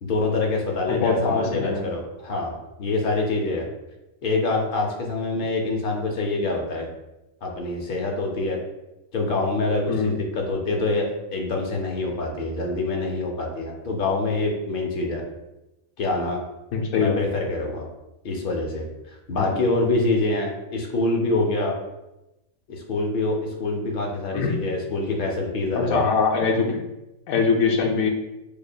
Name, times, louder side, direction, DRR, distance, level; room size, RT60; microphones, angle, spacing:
voice 1, 0.0-2.5 2.8-3.6 4.2-6.9 7.4-8.6 9.1-15.2 16.0-16.4 16.9-17.9 18.2-18.9 19.3-21.7 22.7-26.0, left 2 dB, 55° left, 0 dB, 0.6 m, -25 dB
voice 2, 0.9-1.8 9.9-10.1 16.7-17.2 19.4-19.6 24.3-24.5 25.7-26.8 27.3-28.1, left 5 dB, 80° left, 1 dB, 1.0 m, -22 dB
4.8 x 2.5 x 2.2 m, 0.95 s
omnidirectional pair, 1.5 m